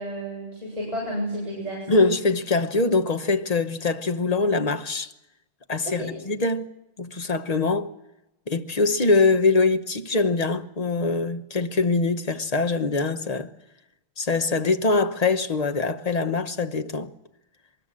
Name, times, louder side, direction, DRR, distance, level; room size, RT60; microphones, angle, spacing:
voice 1, 0.0-2.0 5.8-6.1, equal, 35° right, 7.9 m, -31 dB
voice 2, 1.9-5.1 5.7-6.7 7.0-7.9 8.5-13.5 14.2-17.1, left 3 dB, 40° left, 1.1 m, -23 dB
23.0 x 21.0 x 7.6 m
omnidirectional pair, 1.1 m